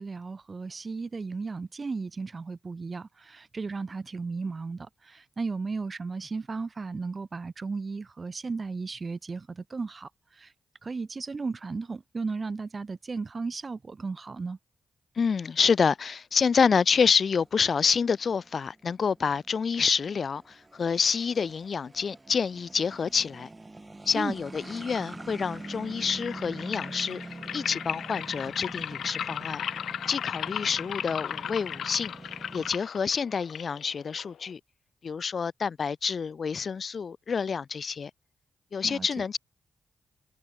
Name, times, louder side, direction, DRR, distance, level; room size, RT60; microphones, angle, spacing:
voice 1, 0.0-10.1 10.4-10.5 10.8-14.6 24.1-24.3 38.8-39.1, right 4 dB, 45° right, 1.2 m, -35 dB
voice 2, 15.1-23.5 24.0-27.2 27.5-29.6 30.1-32.1 32.5-34.6 35.0-38.1 38.7-39.4, left 6 dB, 60° left, 3.3 m, -27 dB
sound 1, 16.9-32.7, right 2 dB, 25° right, 3.7 m, -45 dB
sound 2, 25.5-34.5, left 9 dB, 80° left, 3.3 m, -36 dB
cardioid pair, 55°, 0 cm